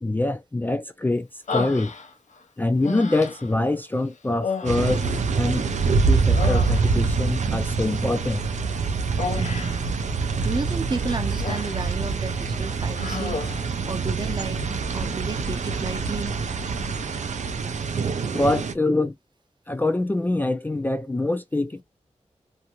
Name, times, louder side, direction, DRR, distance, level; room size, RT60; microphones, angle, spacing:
voice 1, 0.0-1.9 2.6-5.0 5.3-5.7 6.1-8.4 18.3-19.1 19.7-21.8, left 2 dB, 15° left, 0.3 m, -24 dB
Human voice, 1.5-2.4 2.8-3.6 4.4-5.8 6.1-7.2 9.2-9.9 10.9-11.9 12.3-12.5 12.9-13.7, left 4 dB, 90° left, 0.6 m, -32 dB
sound 1, 4.6-18.7, right 4 dB, 85° right, 0.4 m, -25 dB
voice 2, 9.4-10.0 10.4-13.5 13.9-14.6 14.9-16.4, right 4 dB, 40° right, 0.6 m, -32 dB
2.5 x 2.1 x 2.9 m
wide cardioid pair, 100°, 12 cm